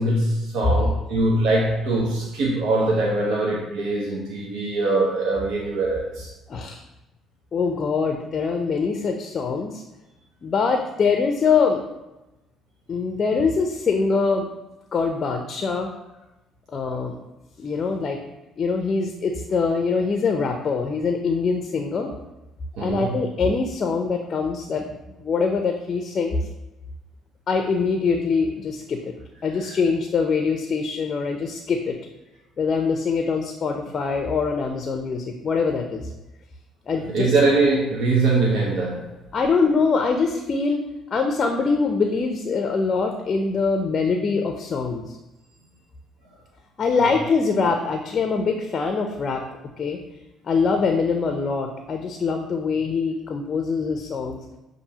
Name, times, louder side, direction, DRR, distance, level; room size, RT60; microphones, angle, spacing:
voice 1, 0.0-6.3 22.8-23.1 29.6-29.7 37.1-39.1 47.0-47.1, right 2 dB, 75° right, -3 dB, 0.8 m, -22 dB
voice 2, 6.5-6.8 7.5-9.8 10.4-11.8 12.9-14.5 14.9-15.9 16.7-17.2 17.6-18.2 18.6-22.1 22.8-26.4 27.5-29.1 29.4-32.0 32.6-36.1 36.9-37.3 39.3-40.8 41.1-45.1 46.8-49.4 49.8-50.0 50.5-54.4, left 4 dB, 40° left, 4 dB, 0.4 m, -23 dB
6.6 x 2.6 x 2.8 m, 1.0 s
supercardioid pair, 85°, 0 cm